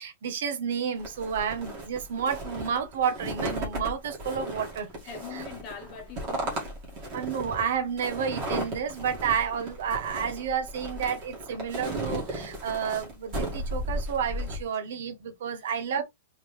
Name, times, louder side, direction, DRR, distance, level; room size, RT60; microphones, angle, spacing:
voice 1, 0.0-4.9 5.3-5.4 7.1-16.0, right 7 dB, 55° right, 1.0 m, -30 dB
sound 1, 1.0-14.6, right 1 dB, 30° right, 2.0 m, -35 dB
voice 2, 5.1-6.7 14.9-15.0 15.6-15.7 16.0-16.1, left 6 dB, 25° left, 1.3 m, -42 dB
3.8 x 3.7 x 3.2 m
supercardioid pair, 180°, 0 cm